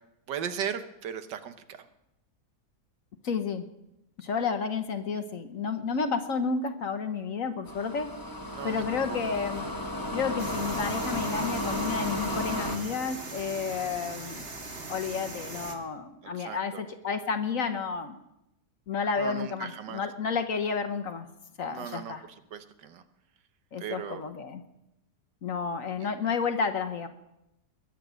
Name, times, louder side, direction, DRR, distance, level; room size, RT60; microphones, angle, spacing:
voice 1, 0.3-1.8 8.5-9.0 16.2-16.8 19.2-20.0 21.7-22.2 22.5-23.0 23.8-24.2 25.8-26.1, right 8 dB, 80° right, 9 dB, 1.6 m, -37 dB
voice 2, 3.2-3.6 4.2-8.1 8.6-9.6 10.1-14.4 14.9-18.2 18.9-21.3 21.6-22.2 23.7-24.6 25.4-27.1, left 5 dB, 55° left, 8 dB, 1.2 m, -31 dB
sound 1, 7.7-12.8, left 1 dB, 15° left, 0.9 m, -33 dB
sound 2, 10.4-15.8, right 3 dB, 35° right, 1.8 m, -40 dB
21.5 x 8.3 x 6.2 m, 0.88 s
omnidirectional pair, 1.9 m